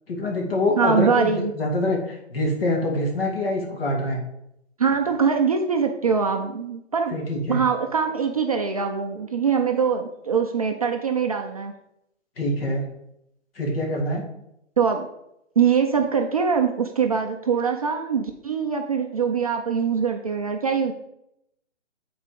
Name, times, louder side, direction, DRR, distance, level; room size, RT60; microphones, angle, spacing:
voice 1, 0.1-4.2 7.1-7.6 12.4-12.8 13.6-14.2, left 1 dB, 50° left, 1 dB, 2.5 m, -25 dB
voice 2, 0.8-1.5 4.8-7.2 7.5-11.7 14.8-15.1 15.6-20.9, right 6 dB, 30° right, 4 dB, 0.5 m, -23 dB
8.7 x 4.3 x 5.1 m, 0.80 s
figure-of-eight pair, 140°, 37 cm